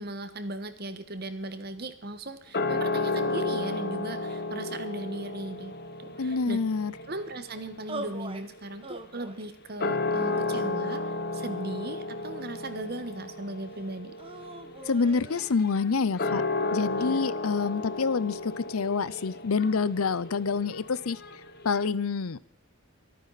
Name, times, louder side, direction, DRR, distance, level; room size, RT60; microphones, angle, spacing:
voice 1, 0.0-5.7 6.0-6.6 7.1-14.1 17.0-17.2, right 1 dB, 45° right, 10 dB, 1.4 m, -38 dB
sound 1, 2.5-9.2 9.7-21.8, left 3 dB, 45° left, 1.1 m, -33 dB
voice 2, 6.2-6.9 14.9-16.4 16.7-21.2 21.6-22.4, left 5 dB, 85° left, 18 dB, 0.6 m, -27 dB
sound 2, 7.9-8.5 8.8-9.5 10.1-11.0 11.8-12.8 14.2-15.5, right 2 dB, 25° right, 1.2 m, -43 dB
24.5 x 9.4 x 4.1 m, 0.65 s
head